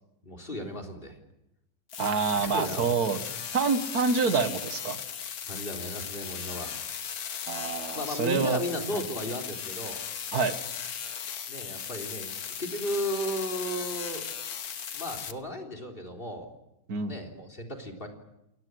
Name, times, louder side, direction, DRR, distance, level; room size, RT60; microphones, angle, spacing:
voice 1, 0.2-1.2 2.1-3.2 5.5-6.8 7.9-10.0 11.5-14.3 14.9-16.5 17.1-18.1, equal, 35° left, 6 dB, 4.0 m, -35 dB
sound 1, 1.9-15.3, left 8 dB, 90° left, 1.7 m, -37 dB
voice 2, 2.0-3.2 3.5-5.0 7.5-8.6 8.9-9.0 10.3-10.5 16.9-17.1, right 5 dB, 90° right, 9 dB, 2.1 m, -27 dB
29.0 x 18.0 x 7.9 m, 0.87 s
omnidirectional pair, 1.6 m